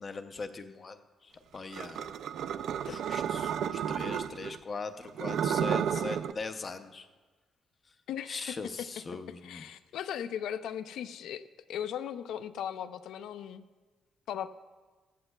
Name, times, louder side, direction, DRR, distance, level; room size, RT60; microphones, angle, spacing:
voice 1, 0.0-2.1 2.8-7.1 8.3-9.6, left 4 dB, 25° left, 8 dB, 0.5 m, -40 dB
sound 1, 1.7-4.6 5.1-6.3, right 8 dB, 65° right, 0.3 m, -32 dB
voice 2, 8.1-8.6 9.4-13.6 14.3-14.5, left 9 dB, 85° left, 12 dB, 0.4 m, -38 dB
16.0 x 13.5 x 2.2 m, 1.3 s
cardioid pair, 180°, 0 cm